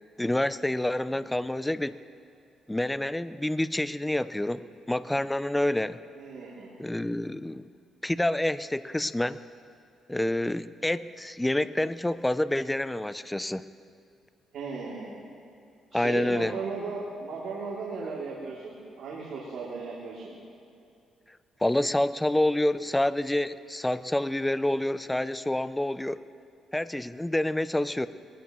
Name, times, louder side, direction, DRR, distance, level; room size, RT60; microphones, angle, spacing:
voice 1, 0.2-2.0 2.7-6.0 6.8-7.7 8.0-9.4 10.1-13.7 15.9-16.6 21.6-26.2 26.7-28.1, left 1 dB, 10° left, 14 dB, 0.5 m, -28 dB
voice 2, 6.1-6.7 14.5-15.1 15.9-20.4, right 4 dB, 75° right, -6 dB, 2.9 m, -36 dB
21.5 x 17.5 x 3.1 m, 2.5 s
cardioid pair, 90°, 0 cm